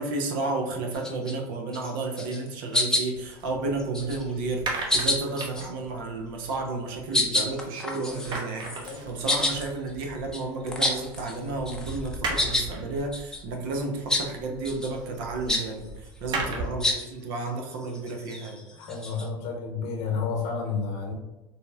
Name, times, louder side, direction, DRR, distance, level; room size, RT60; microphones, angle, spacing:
voice 1, 0.0-18.6, right 3 dB, 75° right, 2 dB, 0.6 m, -32 dB
sound 1, 0.9-1.3 1.7-1.9 2.2-2.5 2.7-3.3 3.8-4.3 4.9-5.7 6.5-6.7 7.1-11.4 11.7-12.7 13.1-13.4 14.1-14.3 14.6-14.9 15.5-15.7 16.8-17.1 17.7-19.3, left 1 dB, 5° left, 0.6 m, -28 dB
Falling and rolling stones, 3.1-7.8 8.0-16.9, right 2 dB, 40° right, 0.8 m, -38 dB
voice 2, 16.3-16.8 18.8-21.1, left 5 dB, 60° left, -1 dB, 0.9 m, -31 dB
3.9 x 2.0 x 2.2 m, 1.1 s
hypercardioid pair, 90°, 12 cm